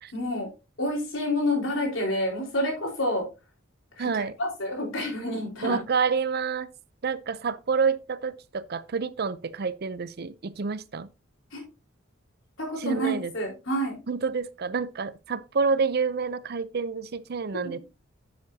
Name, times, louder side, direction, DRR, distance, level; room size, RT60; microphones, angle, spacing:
voice 1, 0.1-0.5 0.8-3.3 4.0-4.1 4.4-5.8 11.5-11.6 12.6-14.0, left 1 dB, 85° left, 4.3 m, -28 dB
voice 2, 4.0-4.3 5.6-6.7 7.0-11.1 12.8-13.3 14.1-17.8, right 5 dB, 55° right, 0.6 m, -28 dB
10.5 x 7.3 x 2.7 m
head